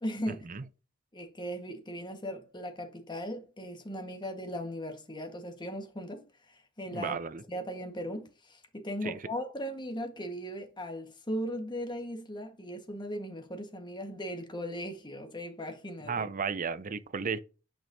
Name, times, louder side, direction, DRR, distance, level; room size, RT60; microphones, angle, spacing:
voice 1, 0.0-0.4 1.1-7.2 7.5-16.3, equal, 25° left, 1.4 m, -38 dB
voice 2, 6.9-7.4 9.0-9.2 16.1-17.4, right 5 dB, 40° right, 0.5 m, -33 dB
8.9 x 5.2 x 2.7 m
head